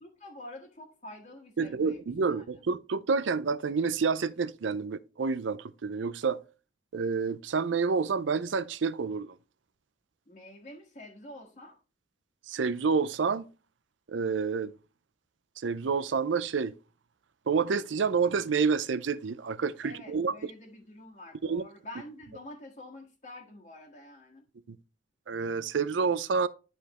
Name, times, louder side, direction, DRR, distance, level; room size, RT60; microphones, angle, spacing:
voice 1, 0.0-2.4 10.3-11.8 19.8-24.4, left 1 dB, 40° left, 1.5 m, -47 dB
voice 2, 1.6-6.4 6.9-9.4 12.5-13.5 14.1-14.7 15.6-16.7 17.5-20.5 21.4-21.6 24.7-24.8 25.3-26.5, right 5 dB, 85° right, 0.5 m, -28 dB
10.5 x 5.1 x 3.0 m
head